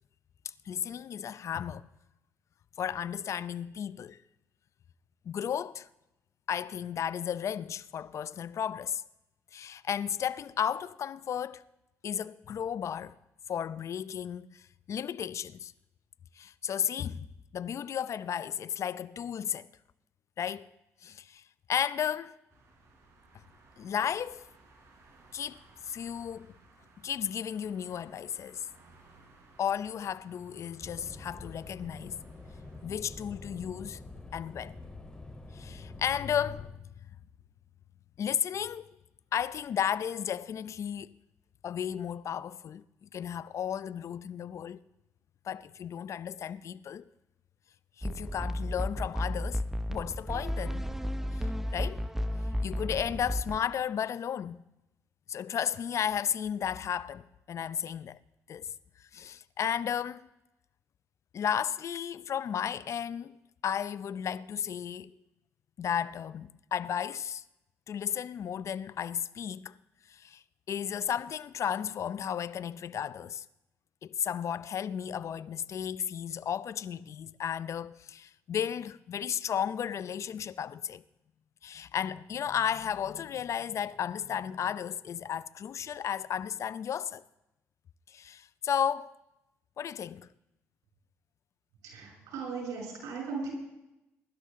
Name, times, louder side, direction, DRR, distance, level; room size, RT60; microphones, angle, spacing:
voice 1, 0.7-1.9 2.8-4.2 5.3-5.9 6.5-9.0 9.5-11.6 12.0-13.1 13.5-15.7 16.4-17.3 17.5-19.7 20.4-20.7 21.0-21.4 21.7-22.4 23.8-24.5 25.3-26.5 27.0-28.7 29.6-32.2 32.8-34.0 34.3-34.8 35.5-36.8 38.2-39.0 39.3-41.1 41.6-44.8 45.4-47.0 48.0-49.6 49.9-50.9 51.4-52.0 52.6-54.6 55.3-58.2 58.5-58.7 59.1-60.2 61.3-63.4 63.6-65.1 65.8-67.4 67.9-69.7 70.1-73.4 74.0-81.0 81.6-87.2 88.1-89.1 89.8-90.3, left 8 dB, 55° left, 0.6 m, -34 dB
sound 1, 22.5-32.8, right 3 dB, 55° right, 4.7 m, -60 dB
sound 2, 30.8-36.7, left 2 dB, 15° left, 3.9 m, -46 dB
sound 3, 48.0-53.6, equal, 5° right, 0.8 m, -33 dB
voice 2, 91.8-93.5, right 4 dB, 85° right, 7.2 m, -37 dB
22.5 x 12.0 x 3.7 m
supercardioid pair, 75°, 6 cm